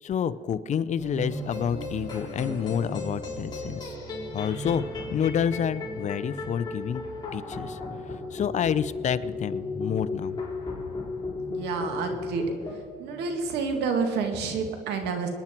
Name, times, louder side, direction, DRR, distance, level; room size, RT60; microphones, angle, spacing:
voice 1, 0.0-3.9 4.3-4.8 5.1-7.0 7.3-7.8 8.3-10.4, left 8 dB, 45° left, 14 dB, 0.7 m, -28 dB
sound 1, 1.0-13.8, right 3 dB, 30° right, 4.4 m, -42 dB
sound 2, 1.3-12.8, left 4 dB, 25° left, 4.3 m, -36 dB
voice 2, 11.5-15.3, right 5 dB, 85° right, 5 dB, 2.2 m, -29 dB
25.5 x 10.0 x 4.5 m, 2.1 s
cardioid pair, 110°, 17 cm